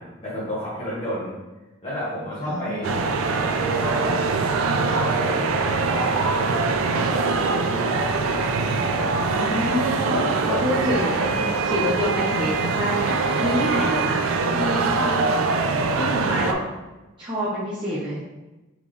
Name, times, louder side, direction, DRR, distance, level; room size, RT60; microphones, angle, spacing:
voice 1, 0.0-1.4 1.8-3.0 3.4-4.2 4.6-7.3 7.6-8.2 8.7-8.8 10.0-10.6, equal, 25° left, -10 dB, 1.1 m, -31 dB
voice 2, 2.4-3.0 9.2-14.2 14.5-15.2 15.4-16.6 17.2-18.2, equal, 25° right, -10 dB, 0.8 m, -27 dB
sound 1, 2.8-16.5, right 4 dB, 85° right, 0.4 m, -23 dB
4.0 x 3.5 x 3.2 m, 1.1 s
head